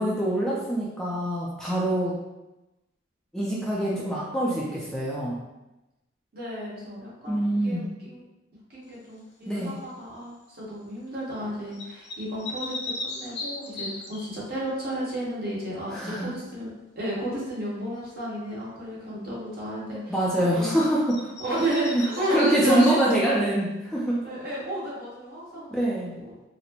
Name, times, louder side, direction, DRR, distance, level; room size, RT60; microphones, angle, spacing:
voice 1, 0.0-2.1 3.3-5.4 7.3-7.8 9.5-9.7 15.9-16.3 20.1-21.3 21.9-22.0 22.3-24.2 25.5-26.1, right 1 dB, 5° left, -6 dB, 0.4 m, -25 dB
voice 2, 6.3-8.2 8.7-20.1 20.4-20.7 21.4-23.1 24.2-25.7 26.2-26.3, right 1 dB, 50° right, -6 dB, 1.2 m, -32 dB
sound 1, 9.6-9.9 11.7-14.3 20.7-20.8 21.1-23.5, left 2 dB, 60° left, 0.7 m, -37 dB
4.0 x 2.1 x 2.9 m, 0.98 s
head